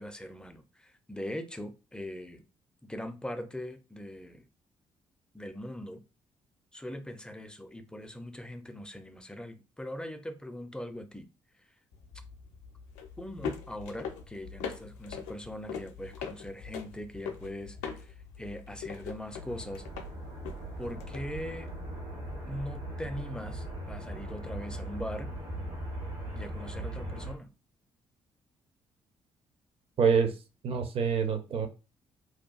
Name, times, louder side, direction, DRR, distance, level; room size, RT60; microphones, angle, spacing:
voice 1, 0.0-2.4 2.8-4.5 5.3-6.0 6.7-11.3 11.6-11.7 13.2-19.8 20.8-21.7 22.5-25.3 26.3-27.5, left 1 dB, 5° left, 0.4 m, -41 dB
sound 1, 11.9-22.8, left 6 dB, 65° left, 0.4 m, -42 dB
sound 2, 19.4-27.3, right 1 dB, 75° right, 1.4 m, -39 dB
voice 2, 30.0-30.3 30.6-31.7, right 6 dB, 45° right, 0.5 m, -26 dB
2.7 x 2.2 x 2.3 m
figure-of-eight pair, 40°, 14 cm